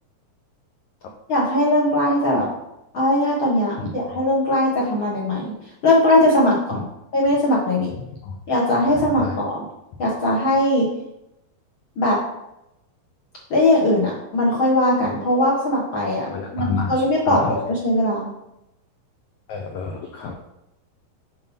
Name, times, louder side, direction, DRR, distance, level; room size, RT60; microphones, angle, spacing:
voice 1, 1.3-2.5 2.9-5.5 5.8-6.8 7.1-7.9 8.5-9.6 10.0-10.9 12.0-12.2 13.5-18.3, left 1 dB, 60° left, -4 dB, 1.3 m, -20 dB
voice 2, 8.9-9.3 16.3-16.9 17.3-17.6 19.5-20.4, left 4 dB, 85° left, 0 dB, 1.6 m, -29 dB
7.4 x 5.4 x 4.3 m, 0.86 s
omnidirectional pair, 4.3 m